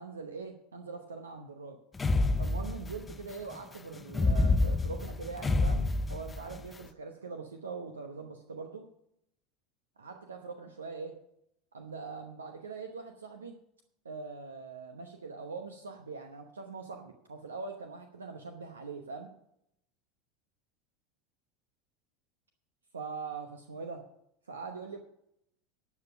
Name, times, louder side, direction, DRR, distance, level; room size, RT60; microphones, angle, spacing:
voice 1, 0.0-1.8 2.4-8.9 10.0-11.2 11.7-13.6 14.0-19.3 22.9-24.0 24.5-25.0, right 4 dB, 80° right, 5 dB, 0.9 m, -42 dB
sound 1, 2.0-3.1 4.1-6.6, left 2 dB, 20° left, 0.6 m, -27 dB
12.0 x 7.3 x 5.9 m, 0.75 s
figure-of-eight pair, 80°, 0 cm